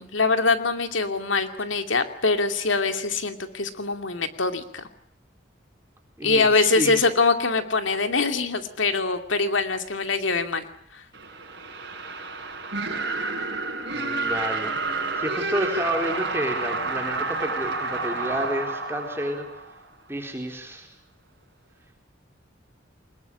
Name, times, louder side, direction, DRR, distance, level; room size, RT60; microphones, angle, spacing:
voice 1, 0.0-4.9 6.2-10.7 10.9-11.0, left 3 dB, 85° left, 7 dB, 2.5 m, -23 dB
voice 2, 6.2-7.0 13.9-14.7 15.2-19.5 20.1-20.9, equal, 15° right, 3 dB, 4.0 m, -30 dB
sound 1, 11.1-20.0, right 3 dB, 60° right, 6.7 m, -30 dB
24.5 x 21.0 x 10.0 m, 0.68 s
head